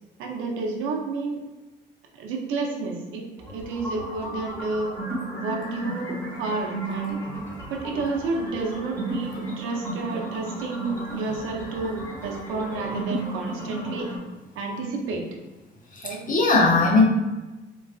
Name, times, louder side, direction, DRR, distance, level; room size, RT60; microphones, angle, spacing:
voice 1, 0.2-1.4 2.1-4.9 5.3-7.2 7.7-12.0 12.2-14.1 14.6-15.2 16.0-16.2, right 3 dB, 90° right, 0 dB, 0.6 m, -30 dB
sound 1, 3.4-14.2, right 1 dB, 10° left, 1.2 m, -34 dB
voice 2, 15.9-17.0, left 3 dB, 45° left, -1 dB, 0.7 m, -19 dB
3.8 x 2.4 x 2.4 m, 1.1 s
cardioid pair, 90°, 20 cm